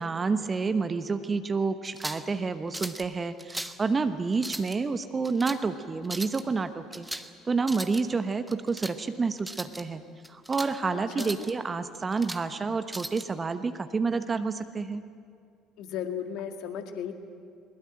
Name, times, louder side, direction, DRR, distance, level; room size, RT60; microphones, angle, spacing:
voice 1, 0.0-7.1 7.5-10.0 10.3-15.0, right 4 dB, 25° right, 10 dB, 1.1 m, -29 dB
sound 1, 1.8-2.3 2.7-3.1 3.4-3.8 4.3-4.8 5.2-5.6 6.0-6.4 6.9-7.3 7.6-8.0 8.5-9.0 9.4-9.8 10.2-10.7 11.1-11.5 11.9-12.4 12.9-13.3, right 1 dB, 10° right, 1.3 m, -38 dB
voice 2, 10.9-11.5 15.8-17.1, left 8 dB, 55° left, 6 dB, 1.9 m, -35 dB
22.0 x 21.0 x 8.8 m, 2.3 s
figure-of-eight pair, 55°, 0 cm